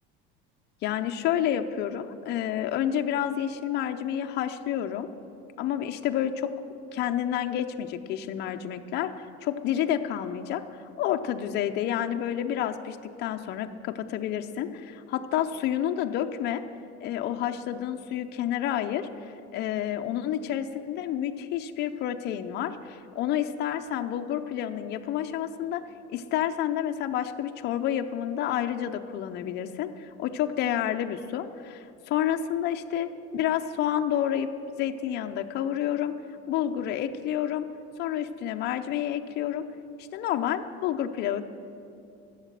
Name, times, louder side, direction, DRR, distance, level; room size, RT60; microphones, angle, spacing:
voice 1, 0.8-5.1 5.6-6.5 6.9-16.6 17.0-25.8 26.1-34.5 34.8-36.1 36.5-37.7 38.0-39.6 40.1-41.5, left 10 dB, 35° left, 6 dB, 0.5 m, -29 dB
13.0 x 7.2 x 7.5 m, 2.7 s
cardioid pair, 175°, 29 cm